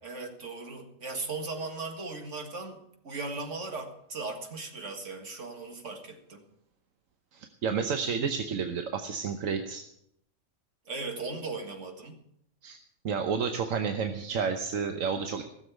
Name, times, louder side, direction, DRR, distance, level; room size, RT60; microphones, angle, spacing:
voice 1, 0.0-6.4 10.9-12.2, right 3 dB, 65° right, 4 dB, 2.2 m, -38 dB
voice 2, 7.3-9.8 12.6-12.8 13.0-15.4, right 6 dB, 80° right, 6 dB, 1.3 m, -30 dB
16.5 x 7.2 x 8.2 m, 0.73 s
omnidirectional pair, 1.4 m